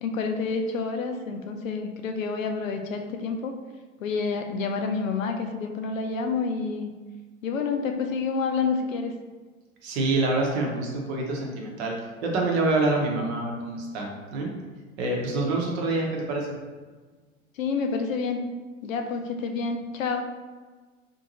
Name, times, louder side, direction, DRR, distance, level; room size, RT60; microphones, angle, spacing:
voice 1, 0.0-3.6 4.0-6.9 7.4-9.1 17.6-18.4 18.8-20.2, left 4 dB, 75° left, 4 dB, 0.5 m, -28 dB
voice 2, 9.8-11.9 12.2-14.5 15.0-16.5, right 2 dB, 55° right, 0 dB, 0.8 m, -26 dB
2.6 x 2.6 x 2.8 m, 1.4 s
figure-of-eight pair, 85°, 40 cm